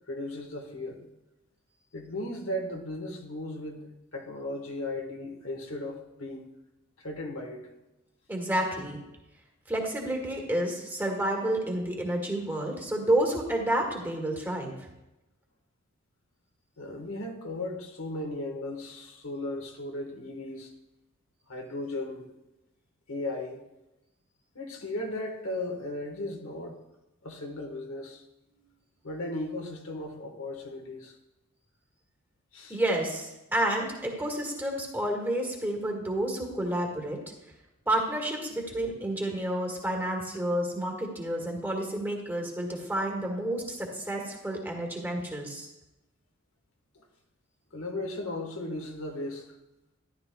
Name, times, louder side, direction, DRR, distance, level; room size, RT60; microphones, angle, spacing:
voice 1, 0.1-1.1 1.9-6.5 7.0-7.6 16.8-20.7 21.5-22.3 23.1-23.6 24.5-26.8 27.2-28.2 29.0-31.2 32.5-32.8 46.9-47.0 47.7-49.5, left 1 dB, 75° left, 2 dB, 1.5 m, -36 dB
voice 2, 8.3-9.0 9.7-14.7 32.7-37.2 37.9-45.7, right 1 dB, 10° right, 0 dB, 1.7 m, -30 dB
13.5 x 11.0 x 2.3 m, 0.96 s
head